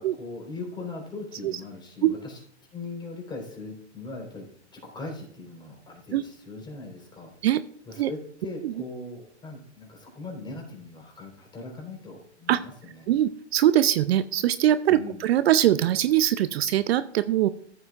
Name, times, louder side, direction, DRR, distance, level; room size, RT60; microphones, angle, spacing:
voice 1, 0.0-2.4 2.7-4.5 4.7-7.3 7.9-13.1 14.9-15.2, left 3 dB, 15° left, 0 dB, 4.0 m, -40 dB
voice 2, 13.1-17.5, right 12 dB, 60° right, 14 dB, 0.6 m, -22 dB
14.5 x 7.9 x 2.5 m, 0.62 s
hypercardioid pair, 130°, 35 cm